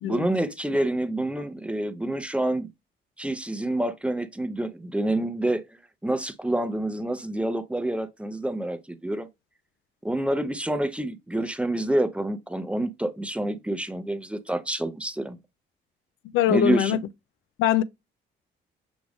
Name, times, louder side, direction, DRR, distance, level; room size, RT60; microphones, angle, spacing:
voice 1, 0.0-2.7 3.2-9.3 10.0-15.4 16.5-17.0, right 1 dB, 5° right, 0.6 m, -27 dB
voice 2, 16.3-17.0 17.6-17.8, left 11 dB, 85° left, 0.4 m, -22 dB
6.1 x 2.5 x 3.4 m
cardioid pair, 90°, 20 cm